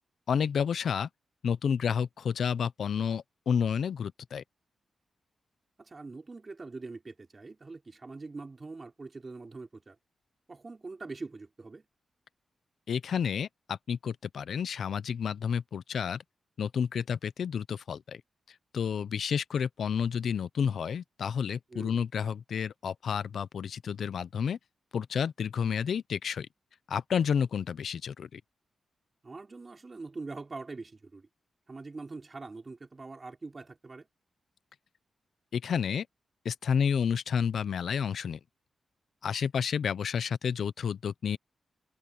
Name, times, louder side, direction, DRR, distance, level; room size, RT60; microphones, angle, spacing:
voice 1, 0.3-1.1 1.4-4.4 12.9-16.2 16.6-18.2 18.5-24.6 24.9-26.5 26.9-28.4 35.5-36.1 36.4-38.4 39.2-41.4, left 7 dB, 75° left, 0.6 m, -30 dB
voice 2, 5.8-10.0 10.5-11.9 21.7-22.0 29.2-31.3 31.7-34.1, right 3 dB, 30° right, 5.5 m, -43 dB
cardioid pair, 100°, 0 cm